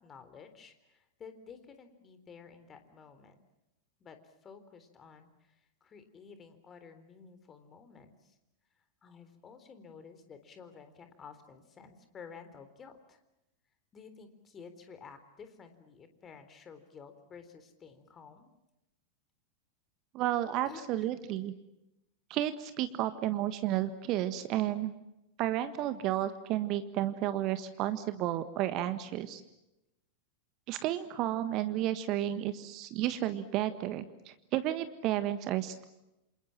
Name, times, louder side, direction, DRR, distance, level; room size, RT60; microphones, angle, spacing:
voice 1, 0.0-3.4 4.0-8.4 9.0-13.2 13.9-18.5 20.6-21.2, left 6 dB, 25° left, 9 dB, 3.7 m, -52 dB
voice 2, 20.1-21.5 22.3-24.9 25.4-29.4 30.7-35.9, right 13 dB, 40° right, 11 dB, 1.5 m, -32 dB
28.5 x 27.5 x 7.5 m, 0.91 s
figure-of-eight pair, 90°, 0 cm